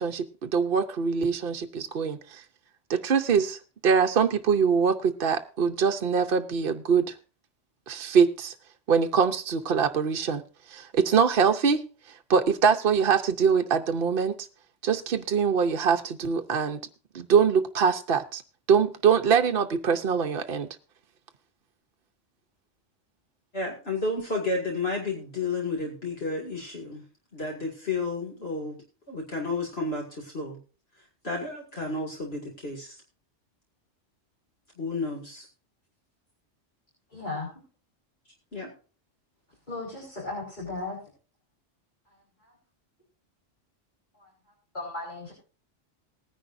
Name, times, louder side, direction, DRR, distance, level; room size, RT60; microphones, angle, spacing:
voice 1, 0.0-2.4 2.9-7.1 7.9-8.5 8.9-10.4 10.7-11.8 12.3-14.5 14.8-16.8 17.1-18.4 18.7-20.7, right 6 dB, 55° right, 5 dB, 0.9 m, -23 dB
voice 2, 23.5-27.0 27.3-28.8 29.1-30.6 31.2-33.0 34.8-35.5 38.5-38.7, left 3 dB, 55° left, -2 dB, 2.5 m, -31 dB
voice 3, 37.1-37.5 39.7-41.0 42.4-42.5 44.1-44.3 44.7-45.3, left 3 dB, 40° left, -5 dB, 5.0 m, -35 dB
19.5 x 10.0 x 2.6 m, 0.35 s
omnidirectional pair, 1.2 m